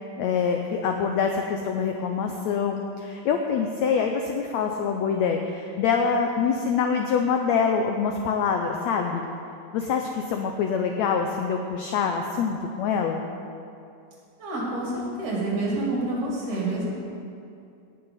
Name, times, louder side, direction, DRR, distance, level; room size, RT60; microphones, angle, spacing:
voice 1, 0.2-9.3 9.7-13.2, left 6 dB, 85° left, 4 dB, 1.5 m, -25 dB
voice 2, 14.4-16.9, right 2 dB, 60° right, -4 dB, 4.1 m, -28 dB
17.5 x 6.8 x 5.6 m, 2.6 s
omnidirectional pair, 3.9 m